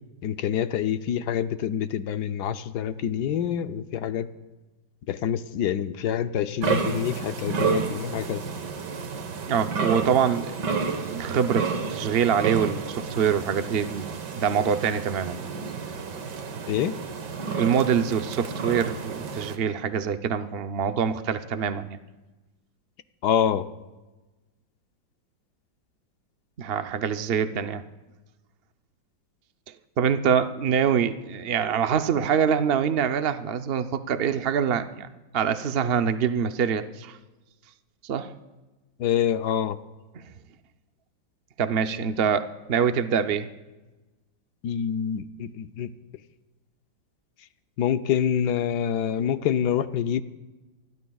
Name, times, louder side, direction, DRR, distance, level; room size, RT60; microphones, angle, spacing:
voice 1, 0.2-4.3 5.1-8.4 16.7-17.0 23.2-23.7 39.0-39.8 44.6-45.9 47.8-50.2, left 9 dB, 65° left, 11 dB, 1.2 m, -26 dB
sound 1, 6.6-19.6, right 5 dB, 65° right, 1.9 m, -31 dB
voice 2, 9.5-15.5 17.6-22.0 26.6-27.8 30.0-35.1 35.3-37.2 38.0-38.3 40.1-40.2 41.6-43.5, right 7 dB, 80° right, 9 dB, 0.5 m, -25 dB
29.0 x 20.5 x 2.3 m, 1.1 s
omnidirectional pair, 2.0 m